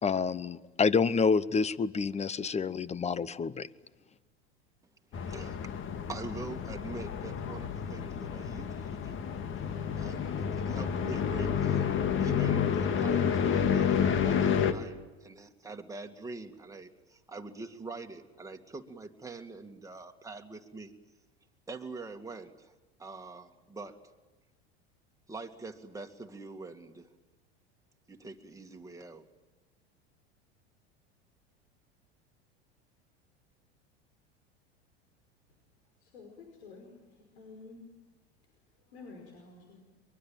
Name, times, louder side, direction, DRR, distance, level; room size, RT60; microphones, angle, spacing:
voice 1, 0.0-3.7, left 5 dB, 20° left, 19 dB, 0.9 m, -28 dB
sound 1, 5.1-14.7, left 7 dB, 40° left, 1.8 m, -30 dB
voice 2, 5.2-5.7 6.1-9.3 10.0-20.9 21.7-22.7 23.0-24.0 25.3-27.1 28.1-29.2, right 3 dB, 10° right, 4 dB, 2.2 m, -44 dB
voice 3, 36.0-37.9 38.7-39.8, left 4 dB, 80° left, 2 dB, 5.4 m, -51 dB
23.5 x 22.0 x 9.1 m, 1.2 s
hypercardioid pair, 90°, 32 cm